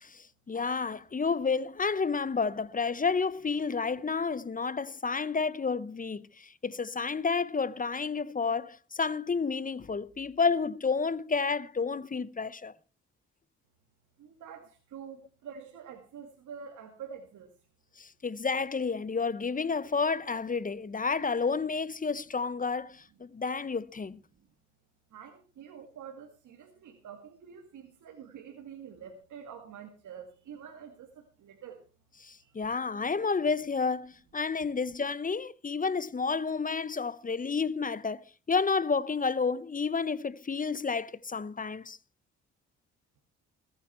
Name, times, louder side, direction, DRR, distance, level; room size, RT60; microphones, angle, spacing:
voice 1, 0.0-12.7 18.0-24.2 32.2-38.2 38.5-42.0, left 5 dB, 25° left, 0.7 m, -30 dB
voice 2, 14.2-17.5 25.1-31.8 32.4-32.5, right 7 dB, 75° right, 2.1 m, -47 dB
21.5 x 8.9 x 4.3 m
cardioid pair, 70°, 30 cm